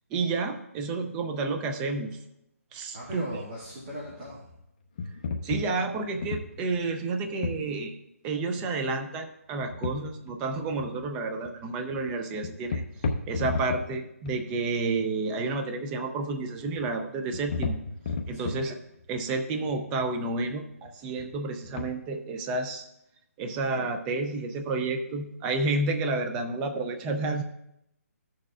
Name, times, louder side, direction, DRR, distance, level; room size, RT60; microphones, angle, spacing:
voice 1, 0.1-2.2 2.7-3.3 5.4-7.9 8.2-12.8 13.3-17.8 18.3-18.8 19.1-22.9 23.4-27.4, right 3 dB, 10° right, 5 dB, 0.4 m, -30 dB
voice 2, 2.9-4.5 18.3-18.6, equal, 35° right, -5 dB, 2.0 m, -39 dB
sound 1, 3.3-3.4 3.6-4.6 5.0-6.8 7.4-7.7 9.6-10.3 10.6-11.1 11.4-11.6 11.9-12.1 12.4-14.0 14.3-14.9 16.3-16.9 17.2-19.2 19.7-20.9 21.2-21.4 21.6-21.8, left 4 dB, 30° left, 0.7 m, -34 dB
15.5 x 6.5 x 2.4 m, 0.81 s
hypercardioid pair, 165°, 8 cm